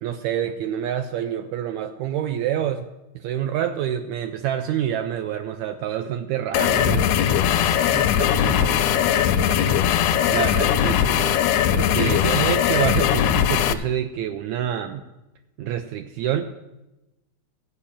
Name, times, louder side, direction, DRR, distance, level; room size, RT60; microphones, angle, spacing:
voice 1, 0.0-2.9 3.2-7.1 10.3-11.4 11.7-15.1 15.6-16.5, right 10 dB, 80° right, 7 dB, 1.8 m, -27 dB
sound 1, 6.5-13.7, left 9 dB, 80° left, 2.0 m, -20 dB
voice 2, 7.5-9.8 10.2-10.5 11.9-12.4, right 4 dB, 60° right, 6 dB, 1.5 m, -35 dB
14.5 x 5.4 x 8.6 m, 0.99 s
omnidirectional pair, 3.5 m